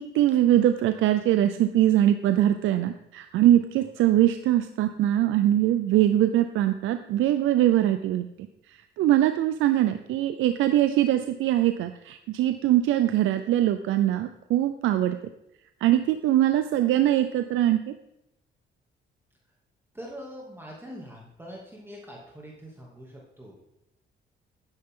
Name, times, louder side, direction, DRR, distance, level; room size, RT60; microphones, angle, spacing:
voice 1, 0.0-8.3 9.0-15.2 15.8-17.9, right 12 dB, 85° right, 9 dB, 0.6 m, -22 dB
voice 2, 19.9-23.6, equal, 10° right, -2 dB, 2.6 m, -43 dB
12.0 x 9.9 x 3.8 m, 0.84 s
cardioid pair, 90°, 20 cm